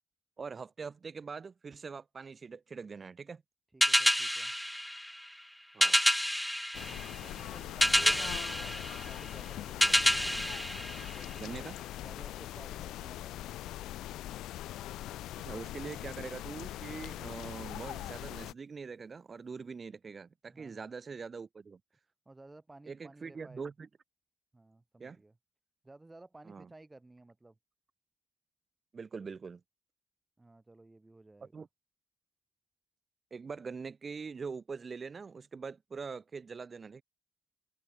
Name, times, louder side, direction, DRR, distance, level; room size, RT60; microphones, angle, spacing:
voice 1, 0.4-3.4 5.7-6.0 8.0-8.1 11.4-11.7 15.4-21.8 22.9-23.9 25.0-25.2 26.4-26.7 28.9-29.6 31.4-31.7 33.3-37.0, right 5 dB, 35° right, 2.9 m, -43 dB
voice 2, 3.7-4.5 6.8-10.0 10.7-13.4 17.1-17.2 20.5-20.9 22.3-23.7 24.5-25.4 25.8-27.6 30.4-31.7, right 2 dB, 15° right, 4.0 m, -55 dB
sound 1, 3.8-11.7, equal, 5° left, 0.3 m, -29 dB
sound 2, 6.7-18.5, left 14 dB, 85° left, 2.6 m, -42 dB
cardioid pair, 90°, 0 cm